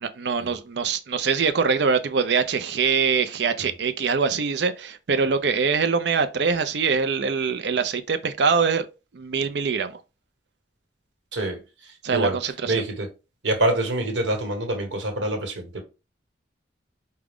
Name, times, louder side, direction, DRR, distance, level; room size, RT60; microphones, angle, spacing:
voice 1, 0.0-8.9 9.1-9.9 12.0-12.8, right 5 dB, 65° right, 0.5 m, -23 dB
voice 2, 11.3-12.4 12.7-13.1 13.4-15.8, right 1 dB, 80° right, 1.2 m, -26 dB
4.9 x 2.2 x 3.5 m
head